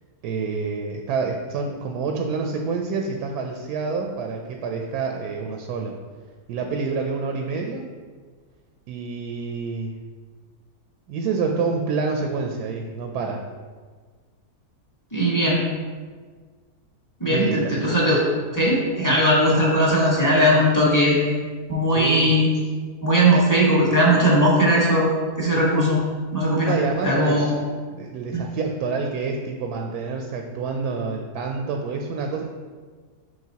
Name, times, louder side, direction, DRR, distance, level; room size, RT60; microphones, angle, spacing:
voice 1, 0.2-6.0 6.5-7.8 8.9-9.9 11.1-13.4 17.3-17.7 22.0-22.4 26.7-27.4 27.9-32.4, right 4 dB, 80° right, 2 dB, 1.1 m, -27 dB
voice 2, 15.1-15.6 17.2-18.2 18.5-21.2 21.7-22.5 23.0-25.1 25.4-26.0 26.3-26.7 27.0-27.5 28.3-28.4, equal, 15° left, -5 dB, 1.3 m, -19 dB
7.5 x 5.3 x 2.8 m, 1.5 s
omnidirectional pair, 1.7 m